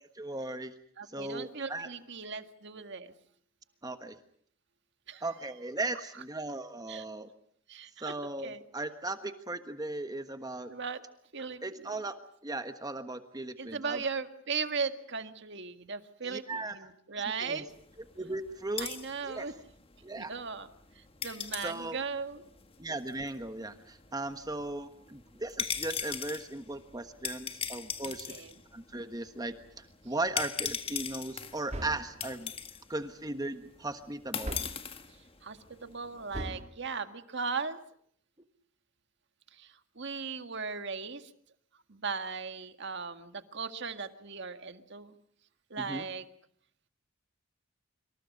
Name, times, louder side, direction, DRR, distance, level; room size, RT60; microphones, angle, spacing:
voice 1, 0.2-0.7 1.1-1.9 3.8-4.2 5.2-7.3 8.0-10.7 11.6-12.2 12.4-14.0 16.2-16.7 17.4-17.6 18.2-18.9 19.2-19.5 20.0-20.3 21.3-22.0 22.8-28.3 28.7-32.5 32.9-34.6 45.8-46.0, right 2 dB, 20° right, 8 dB, 1.3 m, -37 dB
voice 2, 1.0-3.1 5.1-5.2 6.9-7.0 7.7-8.1 8.4-8.6 10.7-11.0 11.3-11.6 13.6-17.7 18.8-19.5 20.2-20.7 21.0-22.4 28.0-28.5 35.4-37.8 39.6-41.3 41.9-45.2 45.7-46.2, right 5 dB, 55° right, 9 dB, 1.8 m, -37 dB
sound 1, 17.7-36.4, left 7 dB, 25° left, 1.6 m, -41 dB
sound 2, 31.7-32.2 34.4-34.9 36.3-36.7, right 1 dB, 35° right, 1.7 m, -39 dB
26.5 x 26.5 x 5.3 m, 0.63 s
head